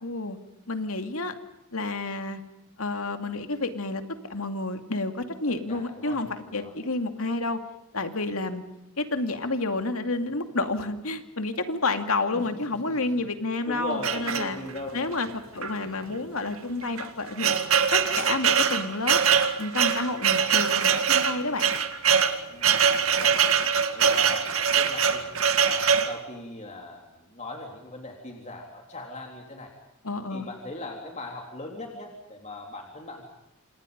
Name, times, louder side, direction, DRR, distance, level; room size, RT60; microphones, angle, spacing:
voice 1, 0.0-0.4 0.7-1.3 1.7-2.4 2.8-4.0 4.3-7.6 7.9-8.6 9.0-14.6 14.9-17.6 17.9-19.2 19.6-21.8 30.0-30.5, left 2 dB, 75° left, 7 dB, 2.5 m, -30 dB
voice 2, 5.7-6.2 6.4-6.7 12.3-13.0 13.6-15.0 22.5-23.4 23.9-25.2 25.7-29.7 30.3-33.2, left 1 dB, 30° left, 1 dB, 3.5 m, -40 dB
sound 1, 14.0-14.9 15.6-15.7 16.0-16.1 16.8-26.2, right 7 dB, 75° right, 2.1 m, -23 dB
29.0 x 28.0 x 5.3 m, 0.90 s
head